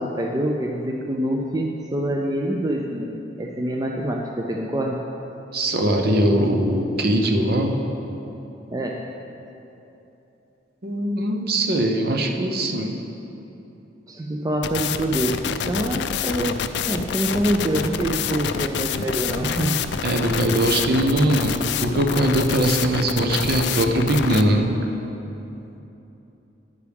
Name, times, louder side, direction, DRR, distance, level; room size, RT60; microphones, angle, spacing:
voice 1, 0.0-5.0 8.7-9.0 14.1-15.4 15.7-16.6 16.9-19.8, right 1 dB, 20° right, 1 dB, 0.4 m, -25 dB
voice 2, 5.5-7.8 10.8-13.0 20.0-24.7, right 1 dB, 55° right, 3 dB, 0.8 m, -21 dB
sound 1, 14.6-24.4, left 7 dB, 65° left, 0.4 m, -27 dB
9.6 x 9.4 x 3.5 m, 3.0 s
head